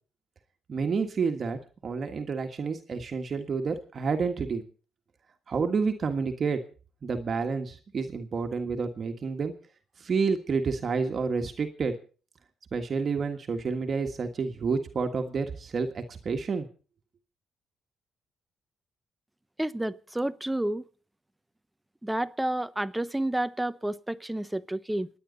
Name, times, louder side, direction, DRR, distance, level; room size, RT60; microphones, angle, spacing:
voice 1, 0.7-4.6 5.5-6.6 7.0-9.5 10.0-12.0 12.7-16.7, right 5 dB, 50° right, 1.6 m, -29 dB
voice 2, 19.6-20.8 22.0-25.1, right 1 dB, 10° right, 0.8 m, -30 dB
28.0 x 9.5 x 4.1 m
cardioid pair, 80°, 0 cm